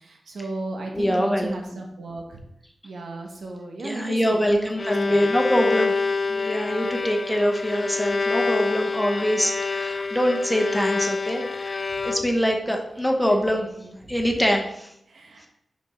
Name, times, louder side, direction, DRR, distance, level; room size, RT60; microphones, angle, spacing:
voice 1, 0.0-2.4 2.8-5.3 11.9-12.0 13.3-14.2 15.1-15.5, right 2 dB, 90° right, 1 dB, 1.5 m, -35 dB
voice 2, 0.9-1.8 3.8-5.9 6.3-11.4 11.7-13.6 14.1-14.6, equal, 5° left, 1 dB, 1.0 m, -24 dB
Bowed string instrument, 4.5-12.6, left 4 dB, 40° left, 0.3 m, -27 dB
5.7 x 5.3 x 5.1 m, 0.76 s
wide cardioid pair, 140°, 0 cm